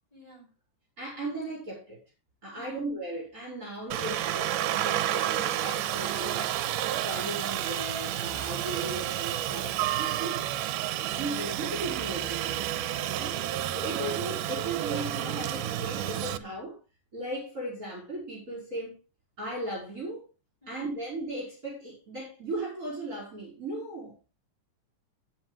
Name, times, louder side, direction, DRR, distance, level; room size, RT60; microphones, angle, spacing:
voice 1, 0.1-0.5 2.5-2.8 20.6-21.0, right 1 dB, 10° left, 7.4 m, -54 dB
voice 2, 1.0-2.0 2.4-6.6 7.0-10.4 11.0-13.3 13.7-16.8 17.1-19.0 19.4-20.3 20.7-24.1, right 2 dB, 25° right, 5.6 m, -37 dB
Aircraft, 3.9-16.4, right 12 dB, 85° right, 2.4 m, -30 dB
15.0 x 9.9 x 3.3 m
omnidirectional pair, 3.7 m